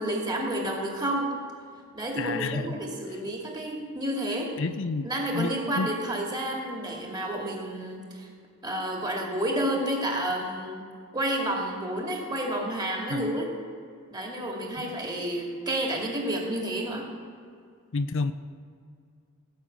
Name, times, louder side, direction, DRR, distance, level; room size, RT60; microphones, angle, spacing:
voice 1, 0.0-1.3 1.9-4.5 5.0-8.3 8.6-10.9 11.1-13.5 14.1-17.1, right 1 dB, 20° right, -1 dB, 2.5 m, -30 dB
voice 2, 2.2-2.7 4.6-5.1 5.3-5.9 13.1-13.2 17.9-18.3, left 4 dB, 60° left, 11 dB, 0.6 m, -29 dB
17.0 x 6.5 x 8.8 m, 2.2 s
head